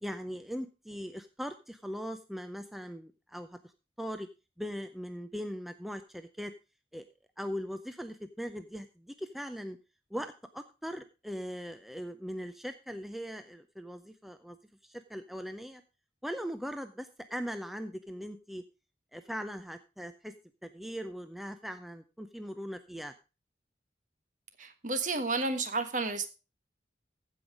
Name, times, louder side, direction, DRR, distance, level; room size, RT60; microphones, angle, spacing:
voice 1, 0.0-3.6 4.0-4.3 4.6-6.5 6.9-7.0 7.4-9.8 10.1-14.6 14.8-15.8 16.2-18.6 19.1-20.3 20.6-23.1, equal, ahead, 8 dB, 0.5 m, -40 dB
voice 2, 24.6-26.3, right 3 dB, 45° right, 9 dB, 1.3 m, -31 dB
15.0 x 5.5 x 4.9 m, 0.31 s
head